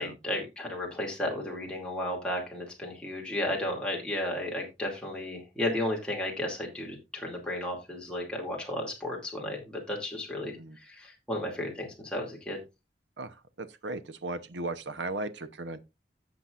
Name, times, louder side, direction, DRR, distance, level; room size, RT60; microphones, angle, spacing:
voice 1, 0.0-12.6, left 1 dB, 5° left, 2.4 m, -34 dB
voice 2, 10.4-10.8 13.2-15.8, right 2 dB, 85° right, 0.9 m, -37 dB
15.5 x 5.9 x 2.5 m
head